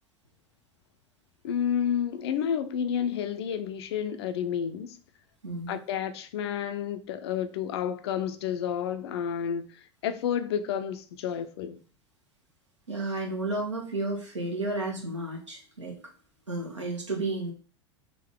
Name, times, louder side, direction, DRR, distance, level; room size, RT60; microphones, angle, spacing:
voice 1, 1.4-5.0 5.7-9.7 10.0-11.8, left 8 dB, 60° left, 0.5 m, -30 dB
voice 2, 5.4-5.8 12.9-16.0 16.5-17.5, right 2 dB, 80° right, 1.1 m, -32 dB
3.7 x 2.6 x 3.5 m
figure-of-eight pair, 80°, 15 cm